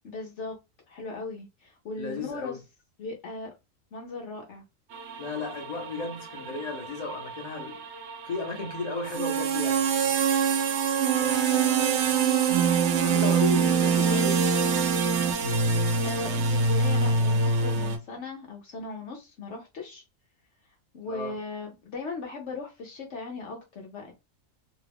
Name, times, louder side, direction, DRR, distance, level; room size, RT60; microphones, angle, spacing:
voice 1, 0.0-0.6 0.9-2.6 3.0-3.5 3.9-4.6 16.0-20.0 20.6-24.1, left 3 dB, 65° left, 0.9 m, -38 dB
voice 2, 2.0-2.6 5.2-7.8 8.2-10.2 11.1-12.4 13.0-14.5 21.0-21.4, left 3 dB, 35° left, 0.8 m, -35 dB
sound 1, 4.9-18.0, right 5 dB, 65° right, 0.8 m, -25 dB
2.8 x 2.3 x 3.3 m
omnidirectional pair, 1.4 m